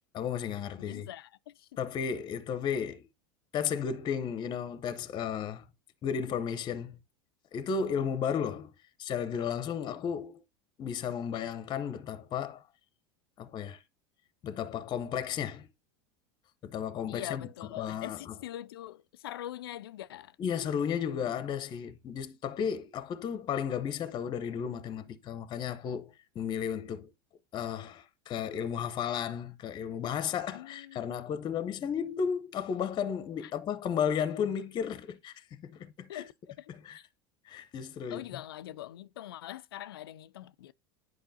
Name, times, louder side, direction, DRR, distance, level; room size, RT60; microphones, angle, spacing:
voice 1, 0.1-1.1 1.8-3.1 3.5-5.7 6.0-7.0 7.5-8.7 9.0-10.4 10.8-12.6 13.4-13.8 14.4-15.7 16.6-17.5 17.8-18.2 20.4-27.1 27.5-36.2 36.7-37.0 37.5-38.2, left 7 dB, 35° left, 0.8 m, -34 dB
voice 2, 0.8-1.7 17.1-20.4 30.5-31.2 33.4-33.5 36.1-37.1 38.1-40.7, left 13 dB, 75° left, 0.4 m, -43 dB
10.5 x 4.7 x 2.7 m
hypercardioid pair, 85°, 12 cm